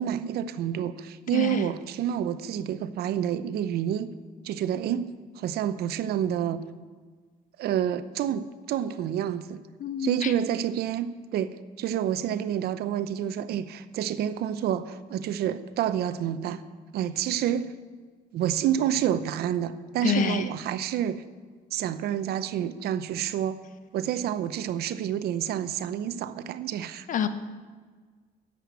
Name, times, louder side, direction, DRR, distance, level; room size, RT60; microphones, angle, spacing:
voice 1, 0.0-4.1 4.4-5.1 5.4-6.6 7.6-9.6 10.0-16.6 16.9-17.7 18.3-21.2 21.7-23.6 23.9-27.1, right 10 dB, 70° right, 12 dB, 0.7 m, -28 dB
voice 2, 1.3-1.6 9.8-10.3 20.0-20.5 27.1-27.3, left 7 dB, 50° left, 10 dB, 0.9 m, -27 dB
11.0 x 7.8 x 8.3 m, 1.5 s
cardioid pair, 110°, 17 cm